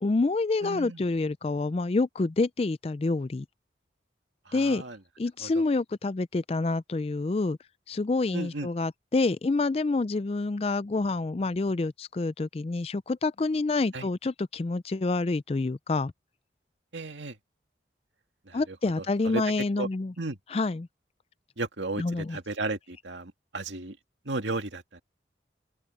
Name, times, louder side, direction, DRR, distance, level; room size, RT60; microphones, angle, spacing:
voice 1, 0.0-3.5 4.5-4.8 5.2-7.6 7.9-16.1 18.5-20.1 20.5-20.9 22.0-22.4, left 3 dB, 35° left, 0.4 m, -27 dB
voice 2, 0.6-1.0 4.5-5.0 5.4-5.5 8.3-8.7 13.9-14.1 16.9-17.3 18.5-18.6 19.3-19.4 19.8-19.9 20.2-20.4 21.6-24.0 24.3-25.0, right 2 dB, 90° right, 2.2 m, -34 dB
open air
head